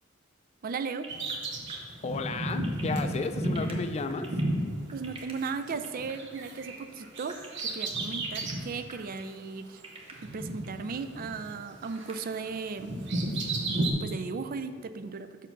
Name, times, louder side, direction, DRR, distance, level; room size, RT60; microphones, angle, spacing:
voice 1, 0.6-1.1 4.9-9.8 10.2-12.9 14.0-15.5, right 5 dB, 45° right, 10 dB, 0.4 m, -36 dB
sound 1, 1.0-5.4 5.8-6.1 6.4-6.5 6.9-7.8 8.2-9.4 9.7-10.1 10.6-10.9 11.3-11.4 11.7-12.4, right 3 dB, 25° right, 0.9 m, -47 dB
Bird vocalization bird call bird song, 1.1-5.7 6.0-8.7 9.2-9.3 10.2-11.6 11.9-13.9, right 1 dB, 60° right, 0.9 m, -33 dB
voice 2, 2.0-4.3, left 4 dB, 30° left, 9 dB, 0.3 m, -33 dB
5.5 x 4.8 x 5.8 m, 2.2 s
head